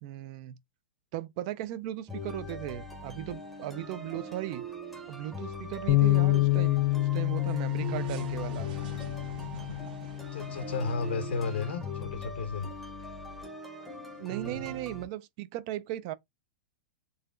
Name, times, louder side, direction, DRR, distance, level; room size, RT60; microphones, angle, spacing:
voice 1, 0.0-0.6 1.1-4.6 5.1-8.7 14.2-16.1, right 14 dB, 35° right, 0.4 m, -37 dB
sound 1, 1.6-2.3 2.6-11.8, right 4 dB, 50° right, 1.3 m, -50 dB
sound 2, 2.1-15.1, equal, ahead, 0.8 m, -41 dB
Bass guitar, 5.9-12.1, left 19 dB, 35° left, 0.4 m, -29 dB
voice 2, 10.3-12.7 14.3-14.7, left 4 dB, 75° left, 0.8 m, -33 dB
3.9 x 2.9 x 2.5 m
supercardioid pair, 165°, 6 cm